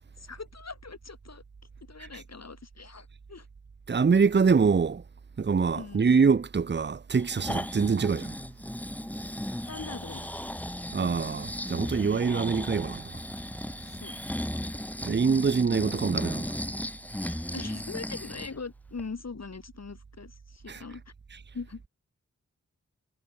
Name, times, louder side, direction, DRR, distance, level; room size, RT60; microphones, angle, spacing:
voice 1, 0.2-1.4 1.9-3.5 5.7-6.1 9.7-10.3 13.8-14.1 17.5-21.0 21.5-21.8, left 4 dB, 55° left, 2.4 m, -41 dB
voice 2, 3.9-5.0 5.4-8.3 10.9-13.2 15.0-16.5 20.7-20.8, right 5 dB, 35° right, 0.7 m, -24 dB
Breathing, 7.1-18.6 19.0-19.1, left 1 dB, 5° left, 0.8 m, -36 dB
cardioid pair, 40°, 32 cm